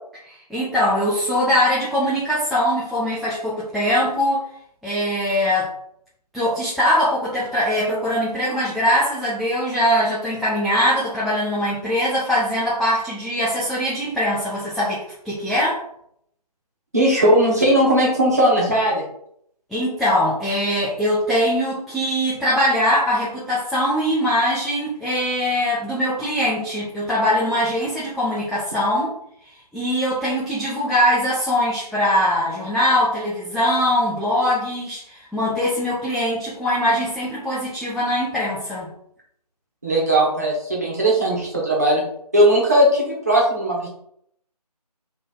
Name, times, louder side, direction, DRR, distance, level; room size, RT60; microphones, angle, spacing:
voice 1, 0.2-4.4 4.8-5.7 6.3-15.8 19.7-29.1 29.7-38.9, equal, ahead, -10 dB, 0.3 m, -22 dB
voice 2, 16.9-19.0 39.8-42.0 42.3-43.9, right 1 dB, 25° right, -3 dB, 0.9 m, -18 dB
3.4 x 3.2 x 3.7 m, 0.71 s
figure-of-eight pair, 170°, 21 cm